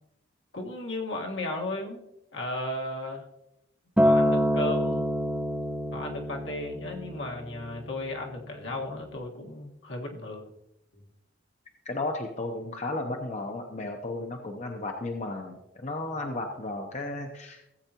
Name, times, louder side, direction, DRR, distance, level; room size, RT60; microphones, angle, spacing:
voice 1, 0.5-3.2 4.0-5.1 5.9-10.5 10.9-11.0, left 2 dB, 70° left, 1 dB, 1.6 m, -35 dB
Acoustic guitar, 4.0-8.3 9.1-9.2, equal, 5° right, 0.6 m, -26 dB
voice 2, 11.8-17.6, left 2 dB, 35° left, 3 dB, 0.8 m, -34 dB
15.5 x 7.9 x 2.9 m, 0.86 s
head